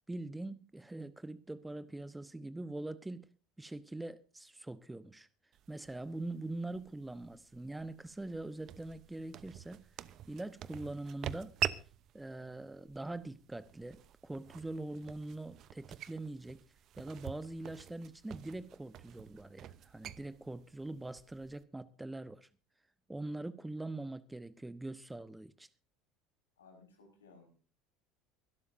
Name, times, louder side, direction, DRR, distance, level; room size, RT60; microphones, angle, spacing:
voice 1, 0.1-3.3 3.6-5.3 5.7-9.9 10.3-11.6 12.1-16.6 17.0-22.5 23.1-25.7, right 2 dB, 10° right, 1.0 m, -43 dB
sound 1, 5.5-21.6, right 11 dB, 50° right, 0.8 m, -46 dB
voice 2, 26.6-27.5, left 4 dB, 80° left, 5.1 m, -59 dB
24.5 x 12.5 x 2.7 m
figure-of-eight pair, 70°, 0 cm